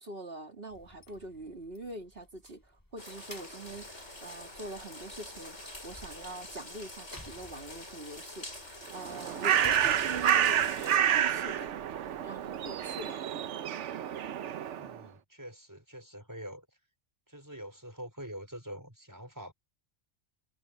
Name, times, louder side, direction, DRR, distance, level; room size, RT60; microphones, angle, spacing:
voice 1, 0.0-10.8 11.0-11.7 12.2-13.2, right 2 dB, 55° right, 3.1 m, -44 dB
sound 1, 0.7-13.1, left 1 dB, 15° left, 3.0 m, -54 dB
sound 2, 3.0-11.0, left 1 dB, 75° left, 6.9 m, -46 dB
Bird, 8.9-15.0, right 9 dB, 85° right, 1.1 m, -29 dB
voice 2, 14.8-16.7 17.3-19.5, equal, 15° right, 5.1 m, -45 dB
omnidirectional pair, 1.2 m